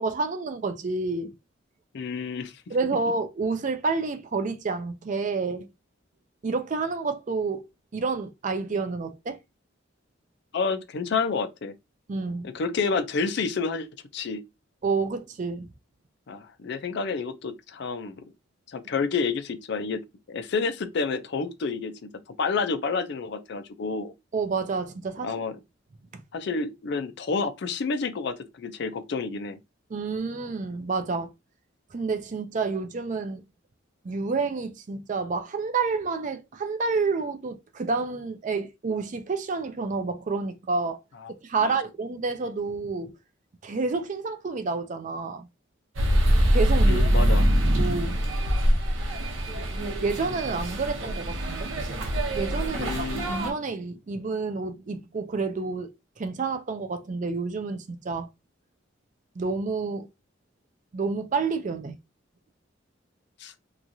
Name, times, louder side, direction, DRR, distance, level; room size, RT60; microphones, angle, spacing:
voice 1, 0.0-1.3 2.7-5.7 6.4-7.6 7.9-9.4 12.1-12.5 14.8-15.7 24.3-25.3 29.9-31.3 31.9-33.4 34.0-41.0 41.4-43.1 43.6-45.5 46.5-47.1 47.7-48.2 50.0-51.7 52.3-58.3 59.4-60.1 60.9-62.0, right 4 dB, 40° right, 0.4 m, -29 dB
voice 2, 1.9-2.6 10.5-11.8 12.4-13.9 14.1-14.4 16.3-18.3 18.7-22.1 22.4-24.1 25.2-25.6 26.3-29.6 41.2-41.3 41.6-41.8 46.8-47.5 52.7-53.3 63.4-63.5, left 4 dB, 60° left, 0.4 m, -29 dB
sound 1, 46.0-53.5, equal, 80° right, 0.8 m, -24 dB
2.9 x 2.4 x 2.6 m
head